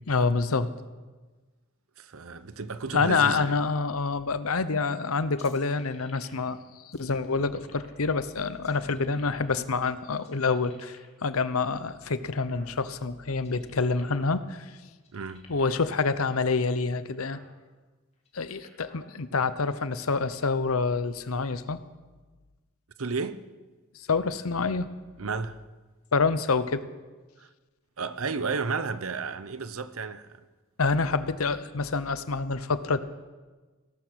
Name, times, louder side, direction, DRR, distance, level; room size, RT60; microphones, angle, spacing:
voice 1, 0.1-0.7 2.9-6.6 6.8-14.7 15.5-17.4 18.3-21.8 23.9-24.9 26.1-26.8 30.8-33.0, left 4 dB, 85° left, 0.9 m, -27 dB
voice 2, 2.0-3.6 15.1-15.5 23.0-23.4 25.2-25.6 27.4-27.5 28.0-30.4, right 4 dB, 75° right, 0.9 m, -32 dB
sound 1, 5.4-6.6 6.9-8.0 8.5-9.8 10.2-11.2 11.7-13.0 13.3-14.3 14.6-14.7 15.0-15.9 16.5-16.6 17.0-17.5 18.1-19.0, left 3 dB, 30° left, 2.7 m, -55 dB
17.0 x 13.0 x 6.4 m
head